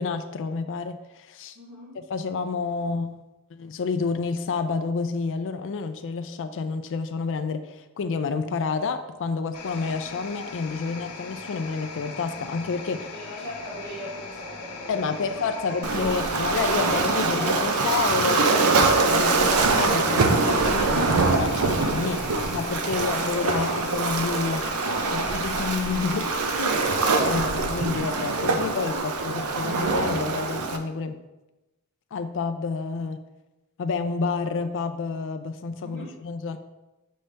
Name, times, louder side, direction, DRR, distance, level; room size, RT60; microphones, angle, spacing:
voice 1, 0.0-1.6 1.9-3.2 3.5-13.1 14.9-22.2 22.5-24.6 25.1-26.8 27.2-31.2 32.1-33.2 33.8-36.6, left 4 dB, 60° left, 8 dB, 0.4 m, -29 dB
voice 2, 1.5-2.0 13.1-15.4 15.8-16.2 17.3-17.6 22.9-23.4 35.8-36.1, equal, 50° right, -6 dB, 2.0 m, -40 dB
sound 1, 9.5-27.2, left 3 dB, 80° left, 0.9 m, -39 dB
Waves surf, 15.8-30.8, right 3 dB, 75° right, 0.6 m, -24 dB
6.5 x 5.4 x 3.3 m, 1.0 s
head